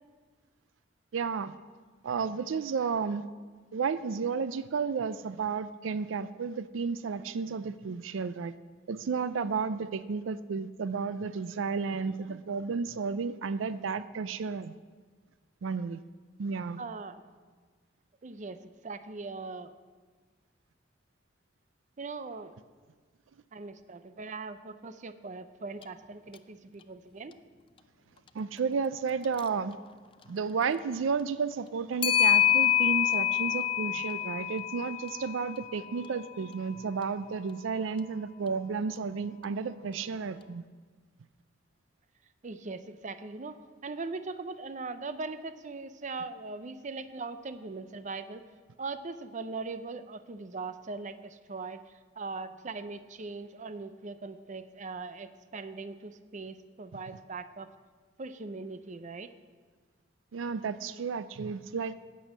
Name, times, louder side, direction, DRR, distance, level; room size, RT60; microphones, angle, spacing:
voice 1, 1.1-1.5 2.0-3.2 3.7-8.5 8.9-14.7 15.6-16.0 16.4-16.8 28.3-29.8 30.3-40.6 60.3-61.9, right 5 dB, 85° right, 14 dB, 0.4 m, -32 dB
voice 2, 16.8-17.2 18.2-19.7 22.0-22.5 23.5-27.3 42.4-43.6 43.8-48.5 48.8-51.8 52.2-57.7 58.2-59.3, right 3 dB, 40° right, 11 dB, 0.6 m, -40 dB
Clock, 25.8-25.9 26.3-26.4 29.2-29.5 32.0-36.2, left 12 dB, 25° left, 0.4 m, -27 dB
11.0 x 8.4 x 7.3 m, 1.5 s
head